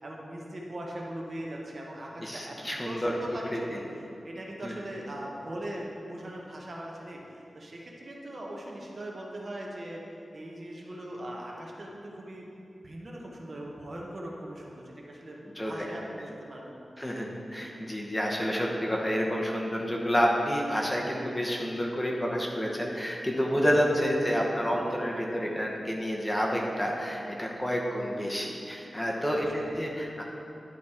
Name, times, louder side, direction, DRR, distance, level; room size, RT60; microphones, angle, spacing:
voice 1, 0.0-2.6 2.8-3.8 4.2-10.0 10.3-12.5 12.8-15.4 15.6-16.9 29.6-29.7, right 1 dB, 50° right, -2 dB, 1.0 m, -40 dB
voice 2, 2.2-3.1 3.5-3.8 4.6-4.7 15.6-15.9 17.0-30.2, equal, 10° left, -2 dB, 1.0 m, -29 dB
11.0 x 4.1 x 4.4 m, 2.8 s
wide cardioid pair, 85°, 0 cm